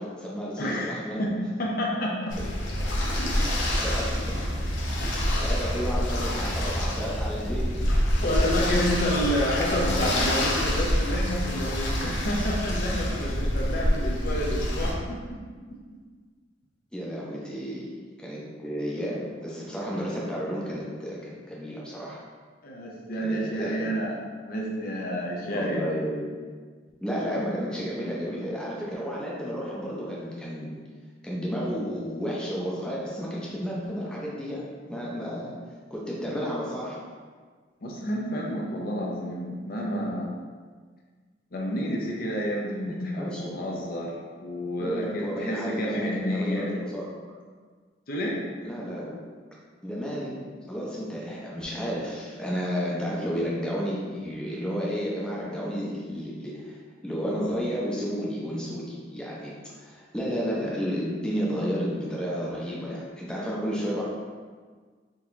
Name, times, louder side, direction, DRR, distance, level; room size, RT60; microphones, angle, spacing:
voice 1, 0.0-1.2 3.8-4.0 5.4-7.7 8.6-8.7 16.9-17.9 18.2-22.2 23.2-24.0 25.4-26.3 27.0-30.8 31.2-34.6 34.9-35.5 35.9-37.0 42.8-43.7 44.8-47.1 48.6-49.1 49.8-50.4 50.7-56.8 57.0-64.0, equal, 5° left, -6 dB, 0.6 m, -32 dB
voice 2, 0.6-2.4 6.6-6.8 8.2-15.4 15.7-15.8 22.6-24.2 24.4-25.8 37.8-40.4 41.5-46.7 48.1-48.4, equal, 50° left, -2 dB, 0.6 m, -29 dB
sound 1, 2.3-14.9, equal, 90° left, 0.8 m, -26 dB
3.8 x 2.9 x 3.6 m, 1.5 s
head